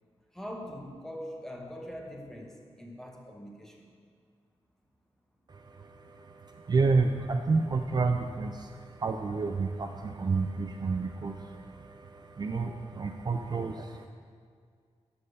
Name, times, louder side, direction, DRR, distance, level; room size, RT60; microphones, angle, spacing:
voice 1, 0.3-3.9, equal, 5° left, 0 dB, 1.0 m, -42 dB
voice 2, 5.5-14.1, right 4 dB, 40° right, 5 dB, 0.4 m, -30 dB
6.6 x 5.6 x 6.6 m, 2.1 s
wide cardioid pair, 135°, 11 cm